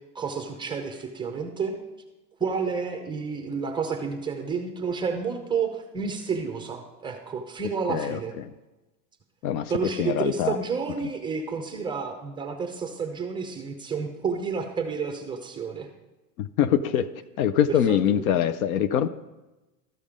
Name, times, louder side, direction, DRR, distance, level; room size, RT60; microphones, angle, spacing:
voice 1, 0.1-1.8 2.4-8.3 9.7-15.9 17.7-18.4, right 5 dB, 10° right, 5 dB, 0.6 m, -30 dB
voice 2, 7.9-8.5 9.4-9.7 10.0-10.6 16.4-17.1 17.4-19.1, left 9 dB, 60° left, 14 dB, 0.6 m, -24 dB
13.0 x 5.4 x 5.0 m, 1.1 s
supercardioid pair, 140°, 48 cm